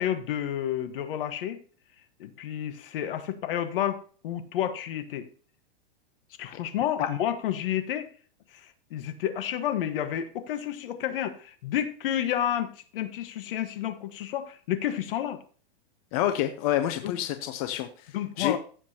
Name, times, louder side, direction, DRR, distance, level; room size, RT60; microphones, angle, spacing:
voice 1, 0.0-1.6 2.2-5.3 6.4-8.1 8.5-15.4 17.0-17.1 18.1-18.6, left 11 dB, 60° left, 10 dB, 1.4 m, -30 dB
voice 2, 16.1-18.6, left 12 dB, 35° left, 8 dB, 0.7 m, -28 dB
15.0 x 7.3 x 2.9 m, 0.43 s
supercardioid pair, 165°, 31 cm